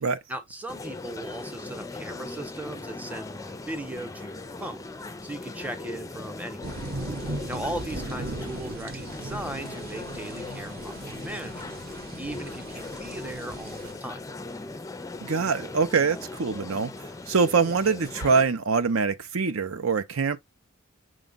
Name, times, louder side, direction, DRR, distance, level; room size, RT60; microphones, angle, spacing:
voice 1, 0.3-6.7 7.2-11.8 12.2-14.2, right 1 dB, 5° right, 0.8 m, -38 dB
sound 1, 0.7-18.4, left 2 dB, 15° left, 0.4 m, -39 dB
sound 2, 6.6-13.9, right 2 dB, 45° right, 0.9 m, -38 dB
voice 2, 15.2-20.4, right 5 dB, 70° right, 0.7 m, -24 dB
6.2 x 2.3 x 3.8 m
head